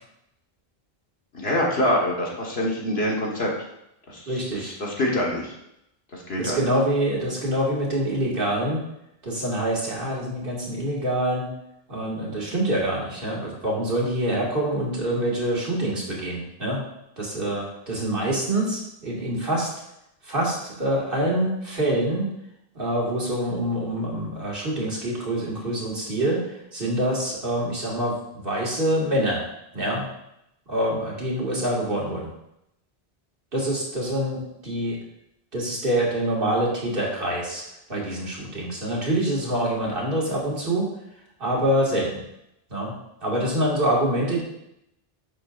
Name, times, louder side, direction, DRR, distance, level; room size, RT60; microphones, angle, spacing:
voice 1, 1.3-3.5 4.1-5.5 6.1-6.7, left 1 dB, 75° left, -2 dB, 2.0 m, -25 dB
voice 2, 4.3-4.7 6.4-8.8 9.2-11.5 11.9-16.8 17.2-19.7 20.2-22.3 22.8-29.4 29.7-30.1 30.7-32.3 33.5-35.0 35.5-37.6 37.9-40.9 41.4-42.2 42.7-43.0 43.2-44.4, right 1 dB, 60° right, -4 dB, 2.5 m, -25 dB
10.5 x 6.9 x 2.6 m, 0.82 s
omnidirectional pair, 1.0 m